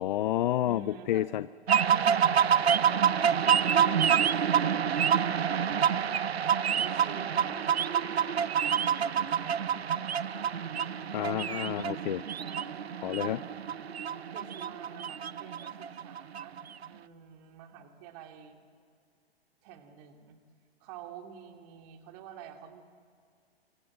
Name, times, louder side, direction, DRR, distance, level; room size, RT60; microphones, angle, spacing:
voice 1, 0.0-1.5 11.1-12.2 13.0-13.4, left 13 dB, 50° left, 18 dB, 0.5 m, -29 dB
voice 2, 0.6-1.3 2.0-2.8 3.4-5.1 5.4-7.7 8.1-10.1 10.7-11.4 12.4-12.9 13.2-13.8 14.3-16.6 16.9-18.6 19.6-20.4 20.8-22.8, right 8 dB, 40° right, 5 dB, 3.0 m, -48 dB
sound 1, 1.7-16.9, right 8 dB, 80° right, 0.7 m, -27 dB
25.0 x 24.5 x 7.7 m, 2.2 s
figure-of-eight pair, 110°, 31 cm